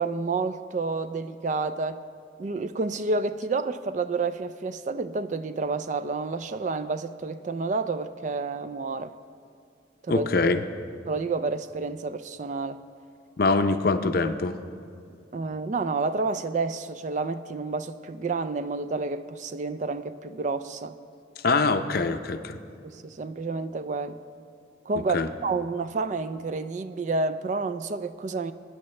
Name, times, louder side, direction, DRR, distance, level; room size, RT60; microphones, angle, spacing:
voice 1, 0.0-2.0 2.4-9.1 10.0-10.3 11.1-12.8 15.3-21.0 22.8-24.2 24.9-28.5, right 3 dB, 40° right, 0.3 m, -29 dB
voice 2, 10.1-10.6 13.4-14.5 21.4-22.6 25.1-25.3, left 3 dB, 50° left, 0.5 m, -23 dB
20.5 x 9.9 x 3.2 m
head